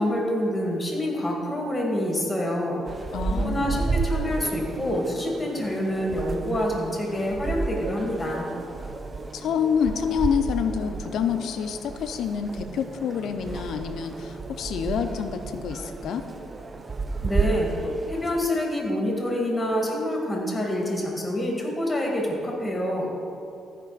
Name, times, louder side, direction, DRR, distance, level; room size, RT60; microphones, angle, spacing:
voice 1, 0.0-2.8 3.3-8.5 17.2-23.1, left 1 dB, 15° left, -1 dB, 2.1 m, -27 dB
sound 1, 2.9-18.5, right 4 dB, 25° right, 0.5 m, -32 dB
voice 2, 3.1-3.8 9.3-16.2, left 7 dB, 75° left, 8 dB, 0.6 m, -27 dB
14.0 x 5.4 x 4.1 m, 2.7 s
cardioid pair, 90°, 0 cm